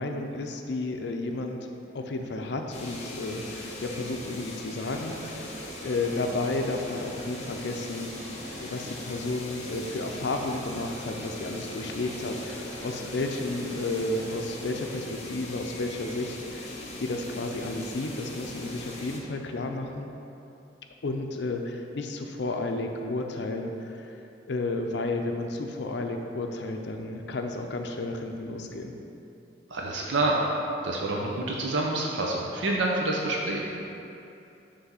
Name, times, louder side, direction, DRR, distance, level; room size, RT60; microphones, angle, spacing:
voice 1, 0.0-1.7 1.9-20.1 21.0-24.2 24.5-28.9, left 2 dB, 65° left, 4 dB, 0.5 m, -32 dB
sound 1, 2.7-19.2, left 1 dB, 40° left, 0.8 m, -40 dB
sound 2, 4.9-14.5, right 2 dB, 45° right, 0.4 m, -47 dB
voice 2, 29.7-30.4 30.8-33.6, right 2 dB, 90° right, -1 dB, 0.7 m, -27 dB
5.8 x 3.4 x 5.6 m, 2.8 s
head